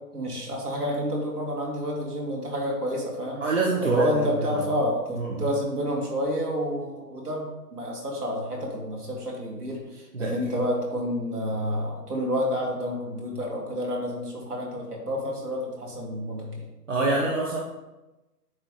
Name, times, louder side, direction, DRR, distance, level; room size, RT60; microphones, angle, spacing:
voice 1, 0.1-3.4 3.8-16.6, equal, 65° right, -1 dB, 2.1 m, -29 dB
voice 2, 3.4-4.3 5.2-5.5 10.1-10.6 16.9-17.6, right 3 dB, 50° right, -3 dB, 0.9 m, -25 dB
8.6 x 3.8 x 3.1 m, 1.0 s
hypercardioid pair, 170°, 50 cm